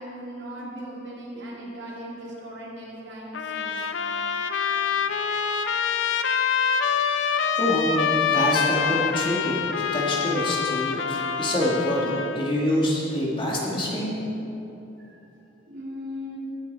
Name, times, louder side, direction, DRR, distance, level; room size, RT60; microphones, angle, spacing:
voice 1, 0.0-3.8 11.1-11.4 15.1-15.2 15.7-16.4, equal, 70° right, -5 dB, 2.5 m, -38 dB
Trumpet, 3.3-12.5, left 6 dB, 80° left, 0.5 m, -26 dB
voice 2, 7.3-14.2, left 1 dB, 25° left, -4 dB, 1.9 m, -26 dB
17.5 x 7.0 x 4.1 m, 2.9 s
head